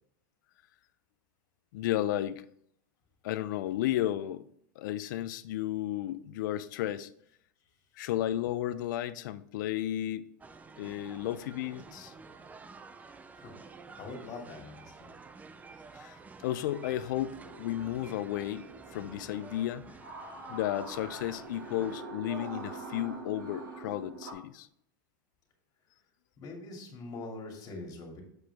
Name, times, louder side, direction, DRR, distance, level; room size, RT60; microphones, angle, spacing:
voice 1, 1.7-2.4 3.2-4.4 4.8-7.1 8.0-10.3 10.8-12.1 15.9-18.7 18.9-19.8 20.5-24.7, left 13 dB, 65° left, 15 dB, 0.5 m, -33 dB
sound 1, 10.4-22.0, right 4 dB, 15° right, 0.5 m, -51 dB
voice 2, 13.3-15.1 16.2-16.3 26.4-28.2, left 3 dB, 35° left, 1 dB, 2.5 m, -44 dB
sound 2, 17.3-24.3, right 3 dB, 85° right, 2.3 m, -45 dB
7.8 x 5.0 x 3.5 m, 0.69 s
hypercardioid pair, 120°, 11 cm